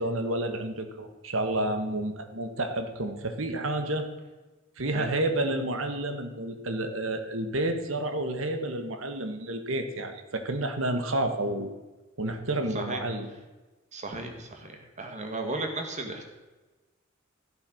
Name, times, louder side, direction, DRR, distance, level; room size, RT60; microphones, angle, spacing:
voice 1, 0.0-4.1 4.8-11.8 12.2-13.3, right 1 dB, 70° right, 7 dB, 1.5 m, -30 dB
voice 2, 13.9-16.2, right 2 dB, 35° right, 4 dB, 1.9 m, -35 dB
14.0 x 8.2 x 6.4 m, 1.2 s
head